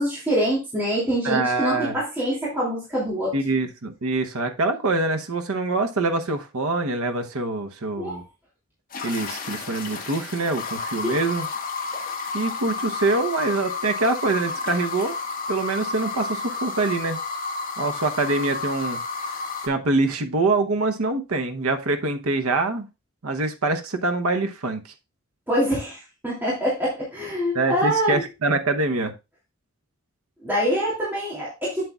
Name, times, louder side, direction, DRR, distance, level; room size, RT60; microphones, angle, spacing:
voice 1, 0.0-3.3 8.0-8.3 11.0-11.2 25.5-28.2 30.4-31.9, equal, 10° right, 2.6 m, -25 dB
voice 2, 1.2-2.0 3.3-8.2 9.0-11.5 12.3-15.2 15.5-17.2 17.8-22.9 23.2-24.8 27.5-29.1, right 3 dB, 90° right, 0.9 m, -25 dB
sound 1, 8.9-19.7, left 4 dB, 40° left, 1.5 m, -31 dB
8.1 x 7.8 x 2.3 m
head